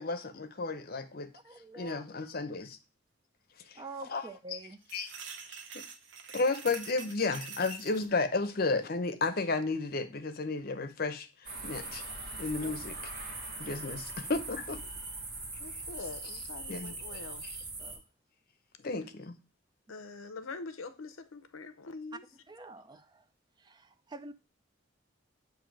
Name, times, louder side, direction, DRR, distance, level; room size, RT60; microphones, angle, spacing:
voice 1, 0.0-1.3 1.7-2.8 3.7-3.8 4.1-4.6 4.9-5.1 5.7-5.8 6.3-12.0 12.4-13.1 13.6-14.8 16.2-16.4 16.7-17.0 17.4-17.6 18.8-19.3, left 3 dB, 50° left, 0.6 m, -33 dB
voice 2, 1.4-2.0 3.8-4.8 17.1-17.2 17.8-18.0 22.1-22.2 22.5-23.2 23.6-24.3, right 3 dB, 20° right, 0.3 m, -46 dB
sound 1, 4.8-8.1, right 6 dB, 65° right, 0.9 m, -45 dB
sound 2, 11.4-18.0, right 2 dB, 50° right, 1.6 m, -41 dB
voice 3, 15.6-17.4 19.9-22.2, left 3 dB, 85° left, 0.6 m, -44 dB
7.6 x 2.7 x 5.1 m
head